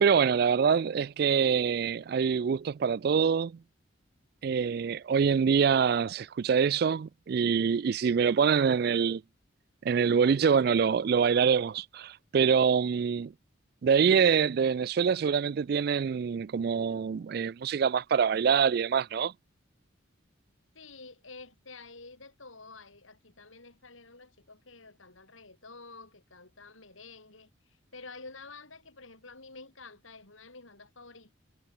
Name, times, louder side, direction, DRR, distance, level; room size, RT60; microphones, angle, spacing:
voice 1, 0.0-3.6 4.4-9.2 9.8-13.3 13.8-19.3, right 6 dB, 50° right, 0.3 m, -25 dB
voice 2, 20.7-27.5 27.9-31.4, left 3 dB, 80° left, 5.4 m, -49 dB
head